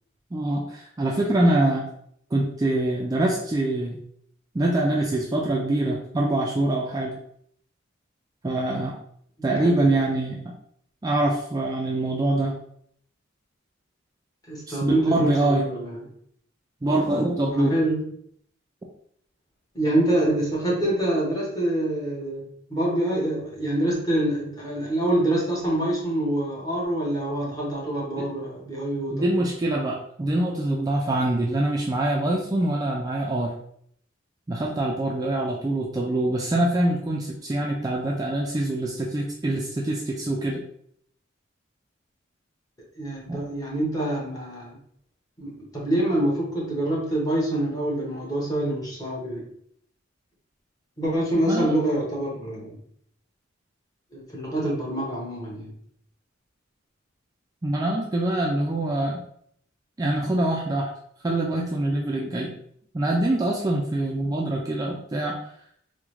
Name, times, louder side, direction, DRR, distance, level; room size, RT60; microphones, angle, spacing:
voice 1, 0.3-1.9 2.3-4.0 4.5-7.2 8.4-9.0 9.4-10.5 11.0-12.6 14.7-15.7 16.8-17.7 28.2-28.3 29.1-33.5 34.5-40.6 43.3-43.4 51.3-51.7 57.6-59.2 60.0-60.9 61.2-62.5 62.9-65.4, right 1 dB, 20° right, -2 dB, 0.3 m, -24 dB
voice 2, 9.4-9.9 14.5-16.0 17.5-18.0 19.7-29.4 43.0-44.8 45.4-49.5 51.0-52.8 54.1-55.7, right 1 dB, 20° left, -5 dB, 1.1 m, -26 dB
3.5 x 2.1 x 3.0 m, 0.67 s
head